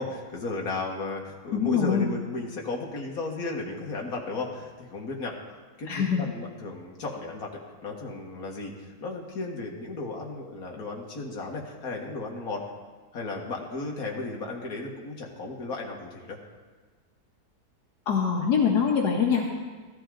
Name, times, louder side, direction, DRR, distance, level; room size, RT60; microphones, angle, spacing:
voice 1, 0.0-5.3 5.8-12.6 13.1-16.4, left 3 dB, 65° left, 0 dB, 2.1 m, -34 dB
voice 2, 1.5-2.1 5.9-6.3 18.1-19.5, left 6 dB, 85° left, 0 dB, 1.7 m, -24 dB
14.5 x 13.0 x 3.8 m, 1.4 s
omnidirectional pair, 1.7 m